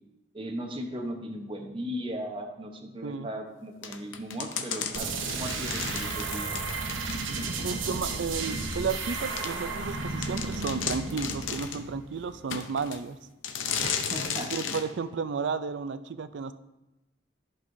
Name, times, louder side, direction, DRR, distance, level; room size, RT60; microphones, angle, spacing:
voice 1, 0.3-5.1 5.3-6.5 13.8-14.5, equal, 25° right, 3 dB, 0.9 m, -37 dB
sound 1, 3.8-7.5 7.9-8.0 8.7-8.8 9.4-9.5 9.9-10.0 10.2-11.9 12.5-13.0 13.4-14.9, left 7 dB, 80° left, 0.7 m, -34 dB
sound 2, 4.9-12.5, right 3 dB, 85° right, 1.0 m, -33 dB
voice 2, 7.6-13.2 14.5-16.5, right 5 dB, 70° right, 12 dB, 0.4 m, -33 dB
14.0 x 5.5 x 2.6 m, 0.96 s
head